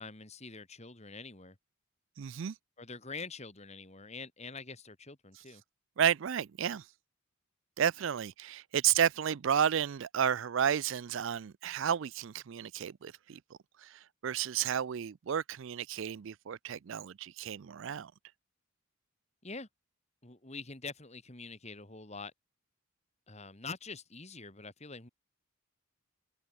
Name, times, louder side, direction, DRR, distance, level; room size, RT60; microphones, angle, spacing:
voice 1, 0.0-1.6 2.8-5.6 19.4-19.7 20.2-22.3 23.3-25.1, left 4 dB, 30° left, 2.4 m, -45 dB
voice 2, 2.2-2.5 6.0-6.8 7.8-13.4 13.8-18.1, right 8 dB, 60° right, 0.4 m, -32 dB
head